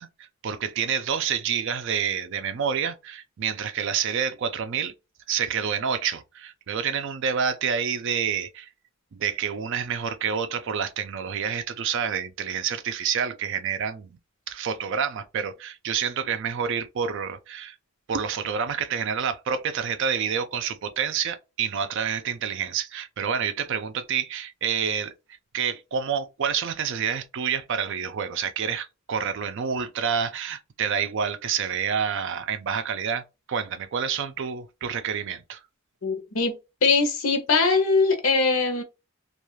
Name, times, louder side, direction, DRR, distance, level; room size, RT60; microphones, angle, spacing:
voice 1, 0.0-4.9 5.3-8.7 9.1-14.2 14.5-17.8 18.1-25.1 25.5-35.6, right 7 dB, 60° right, 0.4 m, -28 dB
voice 2, 36.0-36.5 36.8-38.8, left 4 dB, 70° left, 0.8 m, -21 dB
2.4 x 2.3 x 3.0 m
head